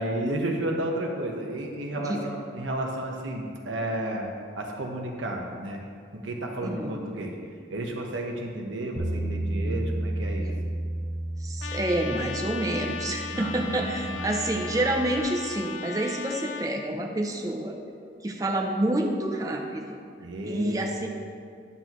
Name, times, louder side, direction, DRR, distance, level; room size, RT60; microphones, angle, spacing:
voice 1, 0.0-4.3 4.5-5.8 6.1-7.4 7.7-10.5 13.3-14.2 20.2-20.9, right 1 dB, 85° right, 1 dB, 1.1 m, -32 dB
voice 2, 6.6-6.9 11.4-17.8 18.2-20.0 20.4-21.1, right 1 dB, 20° right, 1 dB, 0.5 m, -28 dB
Bass guitar, 9.0-15.2, right 1 dB, 35° right, 0.9 m, -33 dB
Trumpet, 11.6-16.7, left 5 dB, 90° left, 0.5 m, -37 dB
9.7 x 8.0 x 3.0 m, 2.2 s
head